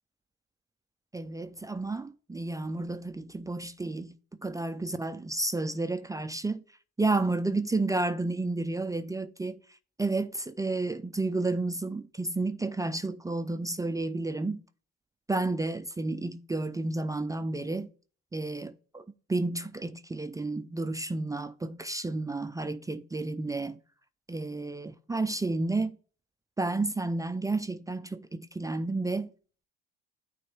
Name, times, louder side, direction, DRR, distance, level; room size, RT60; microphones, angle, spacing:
voice 1, 1.1-6.6 7.0-9.6 10.0-14.6 15.3-17.9 18.3-23.8 24.3-26.0 26.6-29.3, right 2 dB, 10° right, 0.5 m, -31 dB
9.2 x 3.1 x 4.4 m
hypercardioid pair, 60°, 31 cm